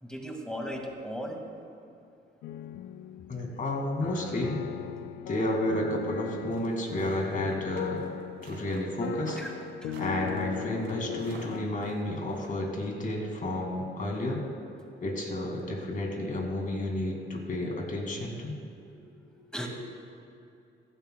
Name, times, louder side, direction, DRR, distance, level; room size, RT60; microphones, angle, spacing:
voice 1, 0.0-1.4 9.4-9.5 9.8-9.9 18.7-18.9 19.3-19.7, equal, 5° left, 1 dB, 1.8 m, -37 dB
sound 1, 2.4-11.7, left 10 dB, 80° left, 0.4 m, -39 dB
voice 2, 3.3-4.6 5.3-8.0 8.4-9.4 10.0-14.4 15.0-18.6, left 1 dB, 40° left, 1 dB, 2.1 m, -31 dB
sound 2, 6.5-12.5, right 4 dB, 65° right, 1.8 m, -49 dB
15.5 x 11.5 x 2.2 m, 2.6 s
cardioid pair, 90°, 20 cm